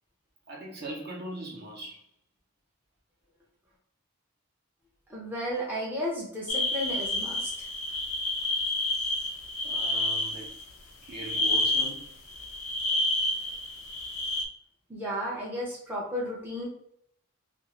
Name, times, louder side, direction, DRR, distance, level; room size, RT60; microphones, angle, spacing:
voice 1, 0.5-2.0 6.5-6.6 9.6-10.5 11.0-12.1, right 1 dB, 45° right, 0.8 m, -40 dB
voice 2, 5.1-7.7 14.9-16.7, equal, 10° right, 0.6 m, -33 dB
sound 1, 6.5-10.6 11.1-14.4, left 2 dB, 70° left, 0.5 m, -29 dB
2.5 x 2.4 x 3.0 m
head